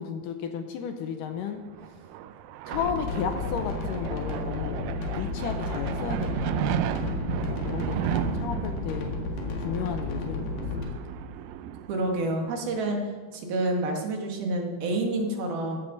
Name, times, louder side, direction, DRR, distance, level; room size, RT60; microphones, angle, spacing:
voice 1, 0.0-1.6 2.7-6.5 7.4-9.1 9.6-11.0, left 7 dB, 80° left, 6 dB, 1.9 m, -34 dB
sound 1, 1.5-12.8, right 11 dB, 90° right, 2.0 m, -34 dB
sound 2, 2.7-10.8, left 3 dB, 65° left, 3.5 m, -32 dB
voice 2, 11.9-13.0 13.3-15.8, right 2 dB, 70° right, 1 dB, 3.5 m, -28 dB
15.5 x 15.0 x 4.1 m, 1.5 s
omnidirectional pair, 4.7 m